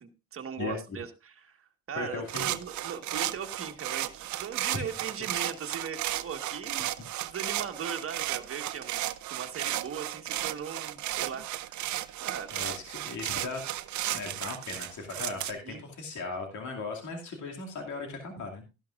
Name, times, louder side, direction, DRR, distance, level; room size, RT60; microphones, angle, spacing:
voice 1, 0.0-6.9 7.2-9.0 9.3-11.9 12.2-12.8 15.6-15.8, right 7 dB, 45° right, 4 dB, 1.6 m, -39 dB
voice 2, 1.9-2.5 4.7-4.8 12.5-13.6 14.1-18.6, left 3 dB, 70° left, 2 dB, 2.4 m, -37 dB
sound 1, 2.3-15.5, right 14 dB, 70° right, 0.7 m, -34 dB
13.0 x 11.5 x 2.5 m, 0.27 s
cardioid pair, 90°, 30 cm